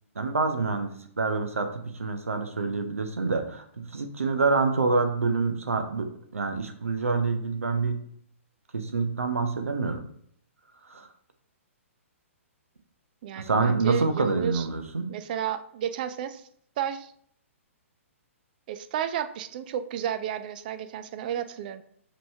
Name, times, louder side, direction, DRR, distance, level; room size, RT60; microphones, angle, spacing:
voice 1, 0.2-8.0 8.7-10.0 10.9-11.1 13.4-15.1, right 4 dB, 75° right, 6 dB, 0.7 m, -27 dB
voice 2, 13.2-14.7 15.1-16.4 16.8-17.1 18.7-21.8, right 9 dB, 40° right, 11 dB, 0.3 m, -32 dB
5.2 x 3.1 x 2.7 m, 0.65 s
figure-of-eight pair, 120°, 7 cm